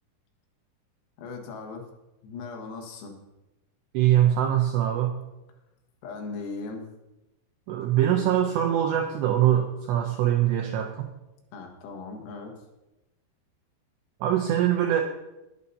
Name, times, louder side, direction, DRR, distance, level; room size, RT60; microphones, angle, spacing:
voice 1, 1.2-1.9 2.2-3.1 6.0-6.8 11.5-12.5, left 4 dB, 85° left, 1 dB, 4.3 m, -38 dB
voice 2, 3.9-5.1 7.7-11.1 14.2-15.0, right 11 dB, 85° right, 3 dB, 2.5 m, -23 dB
20.0 x 8.3 x 2.8 m, 0.99 s
omnidirectional pair, 5.9 m